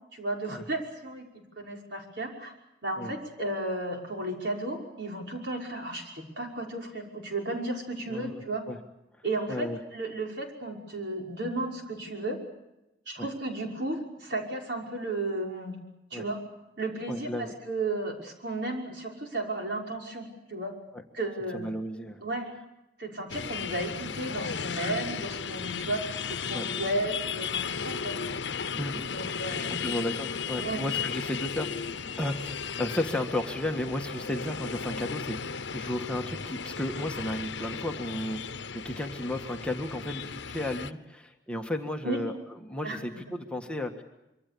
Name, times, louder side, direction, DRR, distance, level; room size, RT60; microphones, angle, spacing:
voice 1, 0.1-2.5 2.8-8.6 9.2-12.4 13.1-15.8 16.1-16.4 16.8-20.7 21.1-21.7 22.2-22.5 23.0-28.2 29.1-29.8 30.6-30.8 42.0-42.2 42.8-43.2, right 2 dB, 70° right, 0 dB, 5.7 m, -34 dB
voice 2, 17.1-17.5 21.5-22.2 26.5-26.7 28.7-29.1 29.5-31.7 32.2-38.4 38.7-44.0, left 1 dB, 5° left, 3 dB, 1.7 m, -33 dB
sound 1, 23.3-40.9, left 6 dB, 85° left, 0.9 m, -35 dB
26.0 x 24.0 x 6.9 m, 0.93 s
head